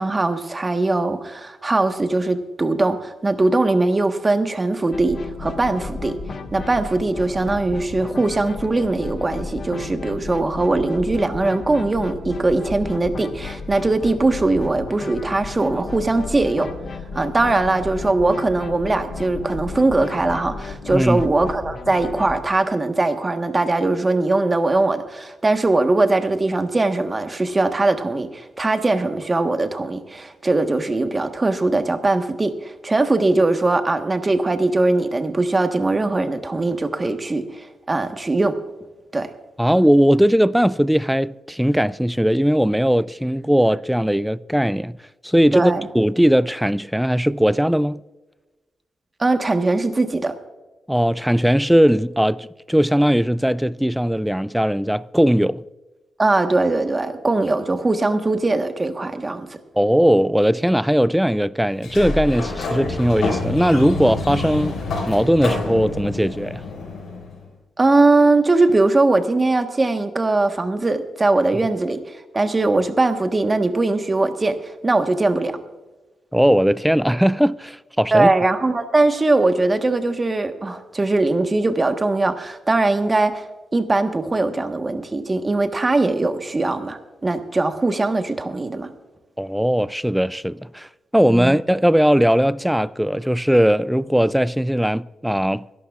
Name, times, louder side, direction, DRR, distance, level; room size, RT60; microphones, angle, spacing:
voice 1, 0.0-6.2 6.5-16.7 17.1-38.6 39.1-39.3 45.5-45.8 49.2-50.3 56.2-59.6 67.8-75.6 78.1-83.5 83.7-88.9 91.3-91.5, right 2 dB, 25° right, 1.3 m, -20 dB
sound 1, 4.9-22.4, left 4 dB, 55° left, 1.3 m, -33 dB
voice 2, 20.9-21.3 39.6-45.0 45.2-48.0 50.9-55.6 59.8-64.8 65.1-66.6 76.3-78.3 89.4-95.6, equal, 5° right, 0.4 m, -19 dB
Sliding door, 61.7-67.4, left 3 dB, 80° left, 5.3 m, -27 dB
23.0 x 11.5 x 2.4 m
cardioid pair, 85°, 0 cm